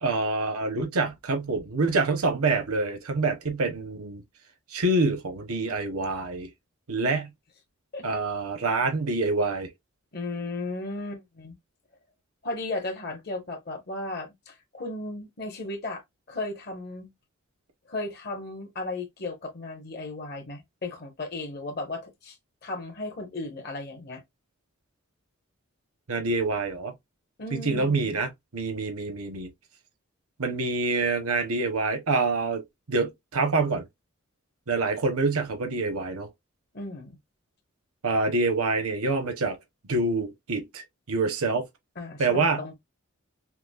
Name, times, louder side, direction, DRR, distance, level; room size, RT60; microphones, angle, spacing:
voice 1, 0.0-4.2 4.7-6.5 6.9-7.3 8.0-9.7 26.1-26.9 27.5-29.5 30.4-32.6 32.9-33.8 34.7-36.3 38.0-39.6 39.9-41.6 42.2-42.6, right 3 dB, 80° right, 0.8 m, -26 dB
voice 2, 10.1-11.5 12.4-16.0 16.3-17.1 17.9-22.4 22.6-24.2 27.4-28.2 36.7-37.2 42.0-42.8, left 2 dB, 45° left, 1.1 m, -35 dB
5.8 x 2.1 x 2.3 m
head